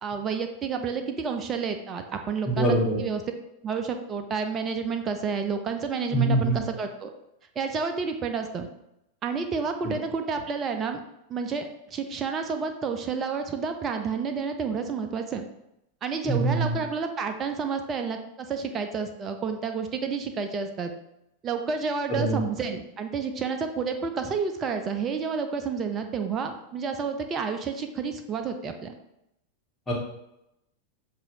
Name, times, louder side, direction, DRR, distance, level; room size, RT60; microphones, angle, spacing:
voice 1, 0.0-3.2 3.6-7.1 7.6-8.7 9.2-11.0 11.3-15.5 16.0-20.9 21.4-28.9, right 5 dB, 25° right, 6 dB, 0.5 m, -30 dB
voice 2, 2.5-3.0 6.1-6.6 16.2-16.7 22.1-22.4 29.9-30.0, right 2 dB, 15° left, -5 dB, 1.6 m, -23 dB
7.2 x 2.5 x 2.9 m, 0.85 s
figure-of-eight pair, 90°, 0 cm